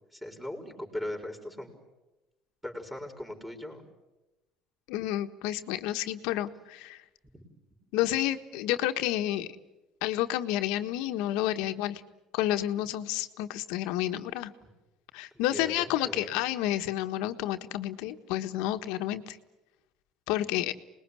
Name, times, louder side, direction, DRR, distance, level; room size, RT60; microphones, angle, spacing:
voice 1, 0.1-1.7 2.6-3.8 7.3-7.4 15.5-16.3, left 1 dB, 5° right, 2 dB, 4.7 m, -39 dB
voice 2, 4.9-7.0 7.9-9.5 10.0-12.0 12.3-14.5 15.1-19.4 20.3-20.7, left 13 dB, 80° left, 8 dB, 1.4 m, -30 dB
26.5 x 20.5 x 9.9 m, 1.0 s
cardioid pair, 125°, 0 cm